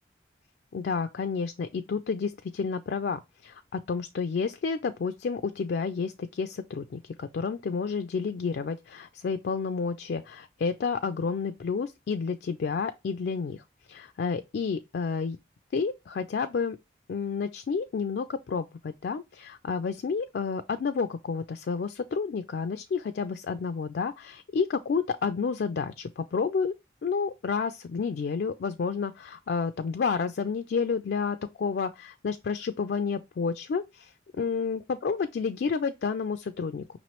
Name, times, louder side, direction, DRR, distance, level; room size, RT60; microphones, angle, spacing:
voice 1, 0.7-15.4 15.7-16.8 17.1-26.7 27.0-34.1 34.4-36.8, left 5 dB, 65° left, 0.3 m, -30 dB
5.5 x 3.0 x 2.9 m
head